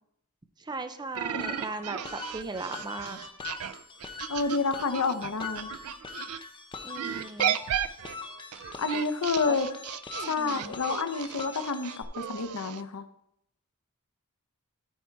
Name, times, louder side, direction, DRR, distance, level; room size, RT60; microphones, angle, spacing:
voice 1, 0.6-3.2 6.8-7.6 9.4-9.6 10.4-10.8, right 3 dB, 20° right, 9 dB, 0.5 m, -38 dB
sound 1, 1.1-6.4 6.9-12.8, right 10 dB, 85° right, 0.4 m, -35 dB
sound 2, 1.4-12.0, left 4 dB, 25° left, 0.8 m, -42 dB
voice 2, 4.3-5.7 8.8-9.7 10.2-13.0, left 4 dB, 90° left, 11 dB, 0.7 m, -29 dB
13.5 x 4.5 x 4.6 m, 0.78 s
head